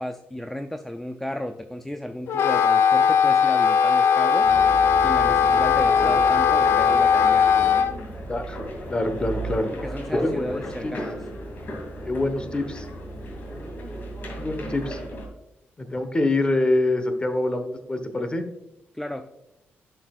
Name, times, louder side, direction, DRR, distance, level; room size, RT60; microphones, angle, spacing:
voice 1, 0.0-4.5 5.0-7.5 9.8-11.2 18.9-19.3, left 1 dB, 5° left, 7 dB, 0.4 m, -33 dB
Wind instrument woodwind instrument, 2.3-7.9, left 7 dB, 70° left, 0.5 m, -19 dB
sound 1, 4.4-15.3, right 1 dB, 45° left, 2.5 m, -34 dB
voice 2, 8.9-9.7 10.1-10.9 12.1-12.9 14.4-15.0 15.8-18.4, left 2 dB, 25° left, 8 dB, 1.0 m, -25 dB
11.0 x 5.8 x 2.4 m, 0.93 s
cardioid pair, 95°, 4 cm